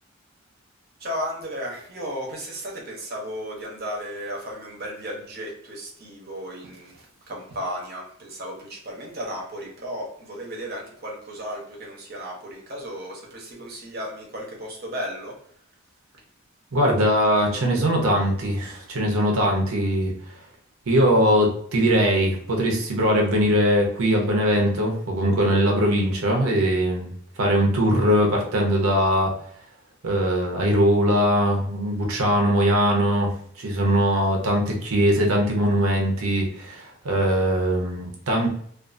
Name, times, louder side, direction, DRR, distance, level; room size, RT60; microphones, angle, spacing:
voice 1, 1.0-6.9 7.3-15.3, equal, 45° right, -2 dB, 0.8 m, -34 dB
voice 2, 16.7-20.1 20.9-27.1 27.4-29.3 30.0-38.5, equal, 80° right, 0 dB, 0.7 m, -21 dB
2.5 x 2.4 x 2.5 m, 0.64 s
head